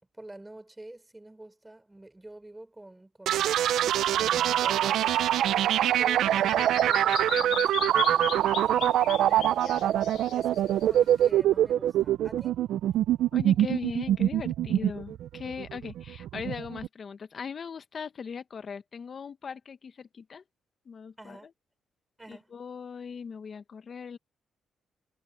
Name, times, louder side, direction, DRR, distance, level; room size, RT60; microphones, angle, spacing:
voice 1, 0.1-5.4 5.7-9.9 10.3-12.6 21.2-21.5 22.2-22.5, right 2 dB, 10° right, 6.1 m, -46 dB
sound 1, 3.3-16.9, right 12 dB, 75° right, 0.5 m, -24 dB
Bird vocalization bird call bird song, 5.4-11.3, left 11 dB, 80° left, 1.1 m, -38 dB
voice 2, 13.3-20.4 20.8-21.4 22.3-24.2, left 6 dB, 45° left, 1.2 m, -39 dB
cardioid pair, 90°, 0 cm